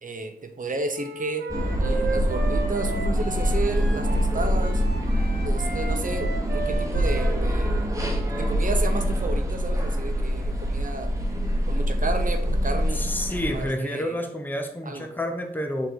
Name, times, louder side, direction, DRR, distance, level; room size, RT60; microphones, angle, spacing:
voice 1, 0.0-1.5 1.8-4.8 5.4-11.1 11.7-13.1 13.5-14.2 14.9-15.1, right 3 dB, 55° right, 6 dB, 0.9 m, -32 dB
Wind instrument woodwind instrument, 0.9-8.5, right 2 dB, 85° right, 1.3 m, -35 dB
sound 1, 1.5-13.6, equal, 20° right, 1.3 m, -25 dB
voice 2, 12.9-15.9, left 1 dB, 10° left, 4 dB, 0.8 m, -29 dB
6.3 x 4.1 x 3.8 m, 0.71 s
wide cardioid pair, 80°, 17 cm